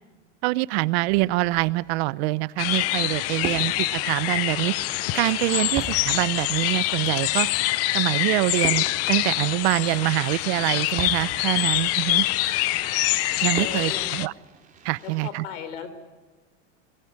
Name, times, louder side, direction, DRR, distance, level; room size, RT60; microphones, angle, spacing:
voice 1, 0.4-4.7 5.1-7.5 7.9-12.3 13.4-14.3 14.8-15.4, right 21 dB, 55° right, 19 dB, 0.8 m, -25 dB
Fireworks, 1.1-15.3, right 5 dB, 20° right, 3.3 m, -41 dB
sound 1, 2.6-14.3, left 17 dB, 40° left, 0.7 m, -25 dB
voice 2, 3.2-4.5 5.5-5.7 13.5-14.2 15.0-15.9, left 8 dB, 75° left, 12 dB, 4.0 m, -39 dB
sound 2, 4.1-7.5 9.8-13.1, left 2 dB, 15° left, 3.2 m, -45 dB
22.0 x 19.0 x 9.6 m, 1.3 s
supercardioid pair, 130°, 37 cm